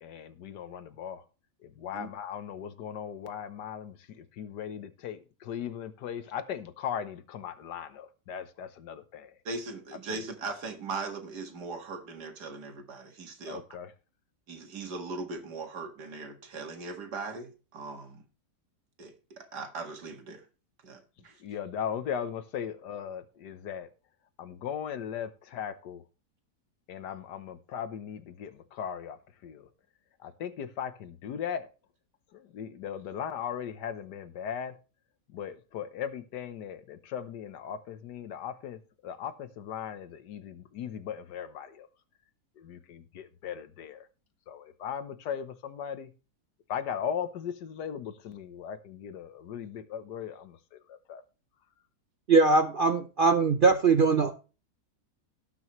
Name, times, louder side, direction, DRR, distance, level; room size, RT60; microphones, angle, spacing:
voice 1, 0.0-1.2 1.6-9.3 10.1-10.2 13.5-13.9 21.4-23.9 24.4-26.0 26.9-29.2 29.4-29.7 30.2-31.7 32.3-34.8 35.3-41.9 42.6-44.1 44.5-46.1 46.7-51.2, left 8 dB, 80° left, 11 dB, 1.5 m, -38 dB
voice 2, 9.5-13.6 14.5-18.2 19.0-20.4 20.8-21.3, right 3 dB, 75° right, 5 dB, 2.3 m, -39 dB
voice 3, 52.3-54.3, right 4 dB, 55° right, 7 dB, 0.6 m, -21 dB
18.0 x 6.2 x 3.1 m, 0.33 s
omnidirectional pair, 1.8 m